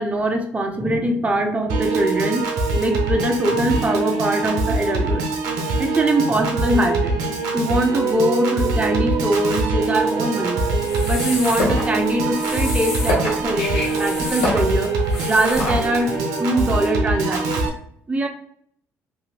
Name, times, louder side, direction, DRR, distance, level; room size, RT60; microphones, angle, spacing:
voice 1, 0.0-2.5 2.8-5.2 5.8-7.2 7.5-10.6 11.1-14.9 15.3-17.7 18.1-18.3, right 1 dB, 20° right, 3 dB, 0.6 m, -22 dB
Piano / Organ, 1.7-17.7, right 3 dB, 75° right, 0.6 m, -23 dB
sound 1, 10.7-16.2, left 1 dB, 90° left, 0.8 m, -27 dB
2.7 x 2.7 x 2.8 m, 0.64 s
supercardioid pair, 60°, 6 cm